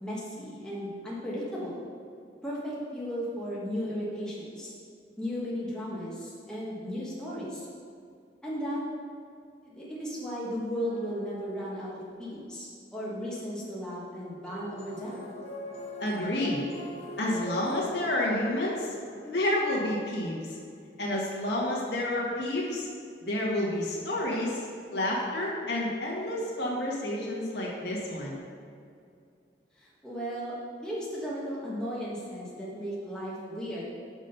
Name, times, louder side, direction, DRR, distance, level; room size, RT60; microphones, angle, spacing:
voice 1, 0.0-1.8 2.4-4.7 5.2-7.7 8.4-8.8 9.6-11.9 12.2-15.2 29.8-33.8, equal, 5° left, -7 dB, 1.4 m, -35 dB
sound 1, 10.8-12.2 14.5-19.7, left 1 dB, 35° left, 0.8 m, -43 dB
voice 2, 16.0-16.7 17.2-18.9 19.2-20.4 21.0-22.9 23.3-24.6 24.9-28.4, left 1 dB, 75° left, -4 dB, 1.7 m, -29 dB
6.3 x 6.3 x 5.5 m, 2.3 s
head